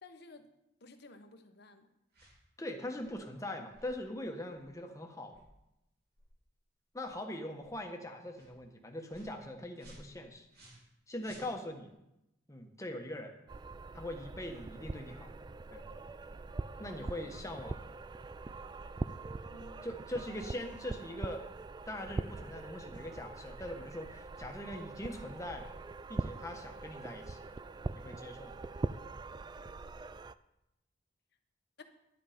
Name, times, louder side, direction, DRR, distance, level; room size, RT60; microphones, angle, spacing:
voice 1, 0.0-0.5 0.8-1.9 19.5-19.9 31.8-31.9, left 3 dB, 60° left, 7 dB, 1.1 m, -54 dB
sound 1, 2.1-2.4 2.9-3.2 3.7-3.9 4.5-4.7 5.3-5.5 6.1-6.3 6.9-7.1 7.6-7.7 8.3-8.5 9.1-9.4 9.8-10.9 11.2-11.9, right 1 dB, 55° right, 3.2 m, -56 dB
voice 2, 2.6-5.4 6.9-10.5 11.1-11.9 12.5-13.3 13.9-15.3 15.7-15.8 16.8-17.9 19.8-21.4 21.9-25.7 26.1-27.4 27.9-28.6, left 1 dB, 15° left, 3 dB, 1.4 m, -42 dB
sound 2, 13.5-30.3, right 3 dB, 25° right, 0.3 m, -42 dB
11.0 x 10.5 x 5.2 m, 0.88 s
head